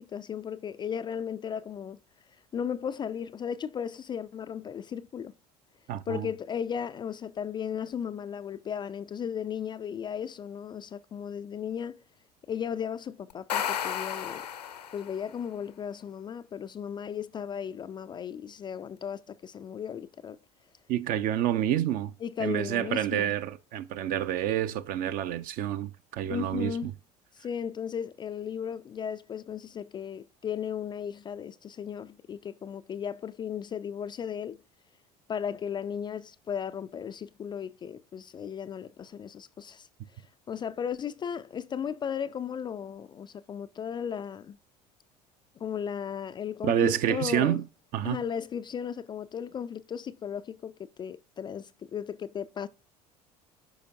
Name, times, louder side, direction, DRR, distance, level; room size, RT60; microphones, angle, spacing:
voice 1, 0.0-2.0 2.5-5.3 6.1-12.0 12.5-14.4 14.9-20.4 22.2-23.3 26.3-26.9 27.4-34.6 35.3-39.9 40.5-44.6 45.6-47.6 48.0-50.7 51.0-52.7, left 8 dB, 20° left, 0.4 m, -35 dB
voice 2, 5.9-6.3 20.9-22.1 22.4-26.9 46.6-47.6 47.9-48.2, right 11 dB, 45° right, 0.6 m, -28 dB
sound 1, 13.3-15.3, left 9 dB, 75° left, 0.7 m, -33 dB
10.5 x 5.0 x 2.6 m
figure-of-eight pair, 65°, 20 cm